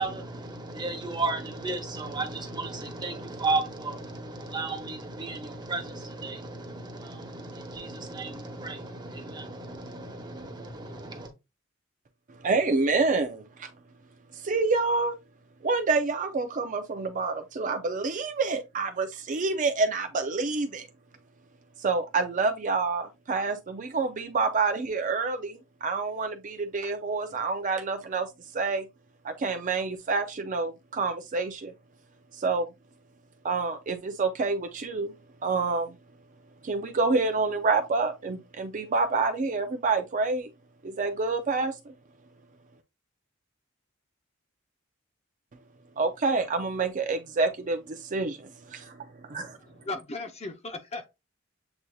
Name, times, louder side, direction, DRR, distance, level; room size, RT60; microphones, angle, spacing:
voice 1, 0.0-11.3, right 3 dB, 20° right, 1.1 m, -34 dB
voice 2, 12.3-13.7 14.3-15.2 15.6-20.9 21.8-28.9 29.2-31.7 32.3-32.7 33.4-35.1 35.4-36.0 36.6-40.5 40.8-41.9 46.0-49.6, right 4 dB, 40° right, 0.5 m, -28 dB
voice 3, 49.3-51.1, left 2 dB, 30° left, 0.6 m, -37 dB
7.7 x 2.8 x 2.3 m
head